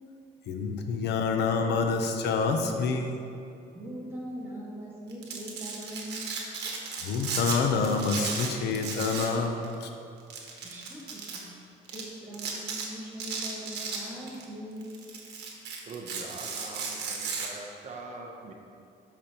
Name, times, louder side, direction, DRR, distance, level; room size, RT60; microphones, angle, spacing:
voice 1, 0.5-3.2 7.0-9.9, left 4 dB, 80° left, 5 dB, 0.7 m, -27 dB
voice 2, 3.7-6.3 10.6-11.5 11.9-14.9, equal, 15° right, -6 dB, 1.6 m, -41 dB
Domestic sounds home sounds, 5.1-7.6 7.8-9.4 9.6-9.8 10.3-11.4 11.9-12.0 12.3-12.9 13.2-14.4 14.8-17.5, right 5 dB, 80° right, 1.2 m, -35 dB
voice 3, 15.9-18.5, right 3 dB, 45° right, 1 dB, 0.8 m, -43 dB
12.0 x 5.2 x 2.9 m, 2.7 s
cardioid pair, 160°, 17 cm